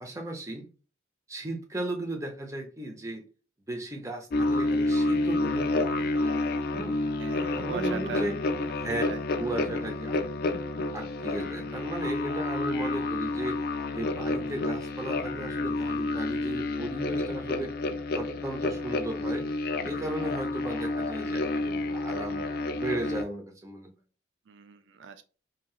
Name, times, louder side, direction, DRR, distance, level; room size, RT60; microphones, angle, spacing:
voice 1, 0.0-0.7 1.3-3.2 3.7-6.9 7.5-8.3 8.7-9.0 9.4-10.2 10.9-13.6 13.9-17.7 18.1-19.5 19.8-22.4 22.7-23.9, right 1 dB, 15° right, 0.5 m, -36 dB
sound 1, 4.3-23.2, left 2 dB, 50° left, 0.3 m, -29 dB
voice 2, 7.2-8.3 8.9-9.2 24.5-25.2, right 6 dB, 70° right, 0.3 m, -40 dB
2.9 x 2.7 x 2.3 m
head